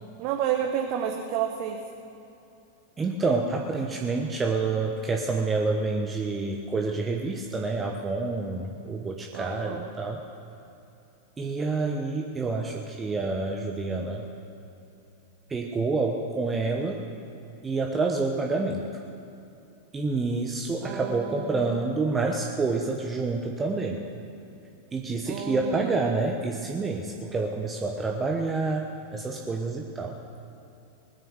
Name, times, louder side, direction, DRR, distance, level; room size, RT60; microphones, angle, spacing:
voice 1, 0.2-1.8 9.3-9.9 20.8-21.6 25.3-26.0, right 9 dB, 45° right, 3 dB, 1.1 m, -30 dB
voice 2, 3.0-10.2 11.4-14.2 15.5-17.0 17.6-18.8 19.9-24.0 24.9-30.2, right 3 dB, 15° right, 2 dB, 1.0 m, -28 dB
20.0 x 9.8 x 6.4 m, 2.8 s
figure-of-eight pair, 90°, 0 cm